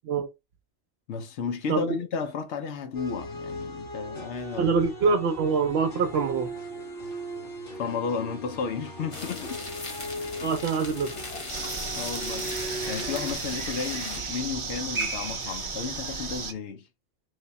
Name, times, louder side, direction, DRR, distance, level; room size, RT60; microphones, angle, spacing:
voice 1, 1.1-4.7 7.8-9.6 10.4-10.5 10.9-11.0 12.0-12.6 12.9-16.9, left 5 dB, 80° left, 1.0 m, -33 dB
sound 1, 2.9-13.4, equal, 50° left, 1.9 m, -39 dB
voice 2, 4.6-6.5 10.4-11.1, right 5 dB, 70° right, 0.8 m, -24 dB
sound 2, 9.1-14.2, left 3 dB, 30° left, 0.7 m, -39 dB
sound 3, 11.5-16.5, right 4 dB, 40° right, 0.4 m, -33 dB
3.3 x 2.2 x 3.9 m
omnidirectional pair, 1.2 m